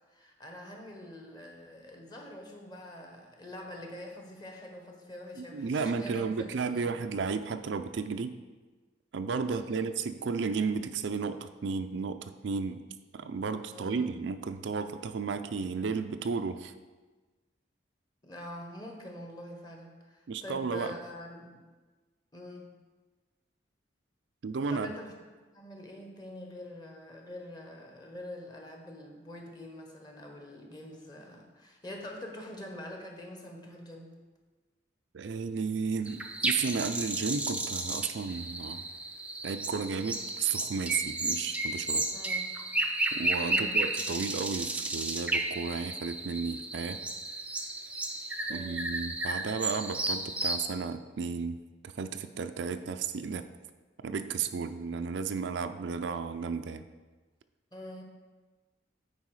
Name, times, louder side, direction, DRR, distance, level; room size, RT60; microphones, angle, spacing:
voice 1, 0.1-6.4 6.7-6.9 9.5-9.9 13.7-14.1 18.2-21.7 22.3-22.7 24.7-25.1 25.5-34.1 42.1-42.5 43.5-43.8 48.5-48.9 57.7-58.0, left 1 dB, 20° left, 1 dB, 1.1 m, -45 dB
voice 2, 5.4-8.4 9.1-12.8 13.1-16.7 20.3-20.9 24.4-24.9 35.1-38.8 39.4-42.0 43.1-47.0 48.5-51.6 52.0-53.4 54.0-56.8, right 5 dB, 70° right, 9 dB, 0.4 m, -33 dB
sound 1, 36.1-50.6, right 2 dB, 5° right, 0.5 m, -33 dB
9.5 x 4.7 x 4.7 m, 1.3 s
head